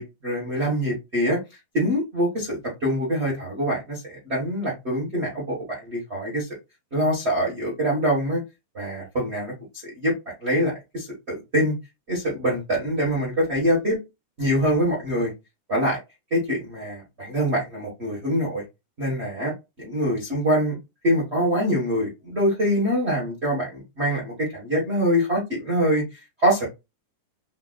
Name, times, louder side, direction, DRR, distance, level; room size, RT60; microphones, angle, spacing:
voice 1, 0.0-1.4 1.7-6.5 6.9-8.4 8.7-9.5 9.8-10.1 10.4-11.8 12.1-14.0 14.4-15.3 15.7-16.0 16.3-18.6 19.0-19.5 19.8-20.8 21.0-26.6, equal, 90° right, 0.5 m, -24 dB
5.1 x 2.5 x 2.3 m
omnidirectional pair, 3.7 m